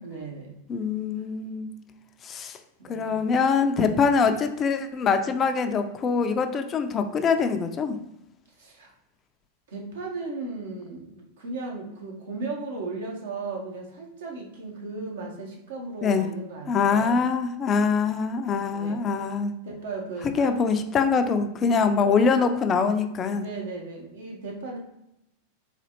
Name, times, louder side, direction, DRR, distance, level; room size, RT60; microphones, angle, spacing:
voice 1, 0.0-0.6 2.8-3.4 3.8-4.0 8.6-8.9 9.7-17.2 18.7-19.0 19.6-20.6 23.3-24.8, right 3 dB, 75° right, 0 dB, 0.9 m, -36 dB
voice 2, 0.7-1.7 2.2-2.6 2.9-8.0 16.0-16.3 16.7-19.5 20.4-23.4, left 5 dB, 30° left, 7 dB, 0.4 m, -24 dB
4.2 x 2.4 x 2.8 m, 0.83 s
hypercardioid pair, 100°, 0 cm